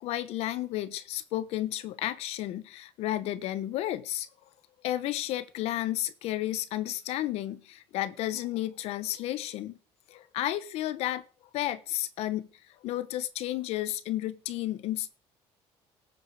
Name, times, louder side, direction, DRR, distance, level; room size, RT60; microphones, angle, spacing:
voice 1, 0.0-4.3 4.8-9.8 10.1-11.2 11.5-15.1, left 14 dB, 70° left, 1.1 m, -32 dB
18.5 x 8.9 x 4.9 m
cardioid pair, 135°, 11 cm